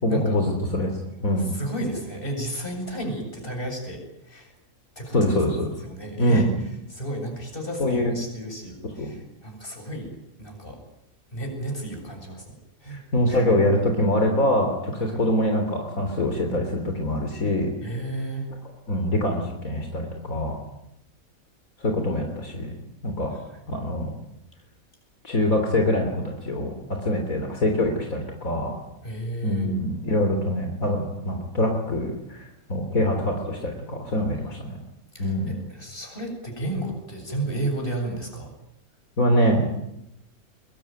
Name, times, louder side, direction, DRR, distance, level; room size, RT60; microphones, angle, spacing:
voice 1, 0.0-0.9 1.2-1.5 5.1-5.7 6.2-6.4 7.8-8.1 9.0-9.1 12.9-17.7 18.9-20.6 21.8-22.7 23.0-23.3 23.7-24.1 25.2-26.7 27.0-28.8 29.4-34.8 35.2-35.6 39.2-39.8, left 1 dB, 75° left, 4 dB, 3.8 m, -24 dB
voice 2, 1.4-4.6 5.0-5.4 5.9-10.1 10.4-10.8 11.3-12.5 12.8-13.0 13.3-13.4 15.0-15.2 17.8-18.5 23.3-23.4 29.0-29.7 35.1-38.5, right 1 dB, 40° left, 3 dB, 7.8 m, -32 dB
24.5 x 22.0 x 9.2 m, 0.84 s
omnidirectional pair, 1.5 m